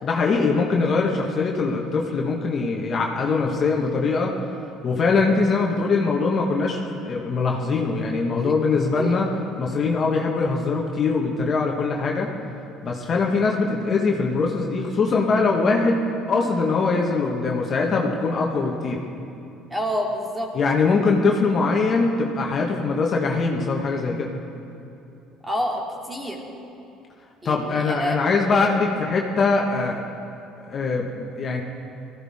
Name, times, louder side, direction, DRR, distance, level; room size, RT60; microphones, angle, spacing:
voice 1, 0.0-4.3 4.8-9.3 9.6-12.3 12.8-16.0 16.3-19.0 20.5-24.3 27.4-30.0 30.6-31.6, left 4 dB, 45° left, 0 dB, 1.6 m, -22 dB
voice 2, 19.7-20.5 25.4-26.4 27.4-28.2 28.5-28.7, equal, 10° right, -1 dB, 2.8 m, -28 dB
18.5 x 14.5 x 3.7 m, 2.8 s
supercardioid pair, 75°, 0 cm